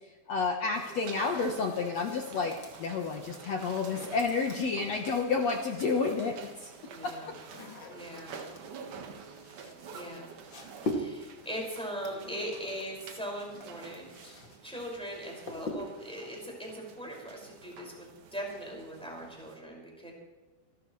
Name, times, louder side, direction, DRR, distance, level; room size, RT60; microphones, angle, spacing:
voice 1, 0.3-6.7 7.0-7.3, left 4 dB, 75° left, 2 dB, 1.5 m, -30 dB
sound 1, 0.7-19.6, right 5 dB, 55° right, 2.6 m, -49 dB
sound 2, 2.5-5.3 6.3-14.6 14.9-16.1, left 1 dB, 35° left, 2.2 m, -43 dB
voice 2, 6.8-7.4 7.9-8.4 9.9-10.3 10.9-14.4 14.6-20.1, equal, ahead, -2 dB, 5.2 m, -40 dB
28.0 x 12.5 x 3.3 m, 1.2 s
omnidirectional pair, 4.9 m